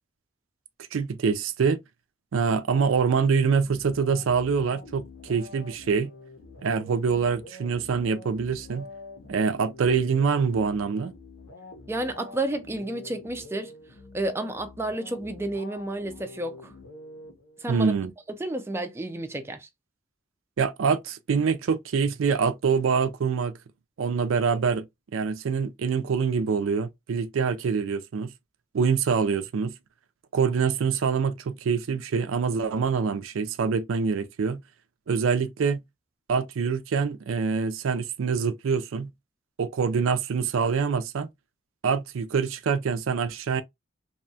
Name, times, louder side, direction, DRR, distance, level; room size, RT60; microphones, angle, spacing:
voice 1, 0.9-1.8 2.3-6.1 6.6-8.9 9.3-11.1 17.7-18.1 20.6-23.5 24.0-24.8 25.1-28.3 28.7-29.7 30.3-34.6 35.1-35.8 36.3-39.1 39.6-41.3 41.8-43.6, right 5 dB, 90° right, 0.4 m, -25 dB
sound 1, 3.5-17.9, left 2 dB, 75° left, 0.7 m, -46 dB
voice 2, 11.9-13.7 14.1-16.7 17.6-17.9 18.3-19.7, right 1 dB, 10° right, 0.3 m, -31 dB
2.7 x 2.2 x 2.6 m
head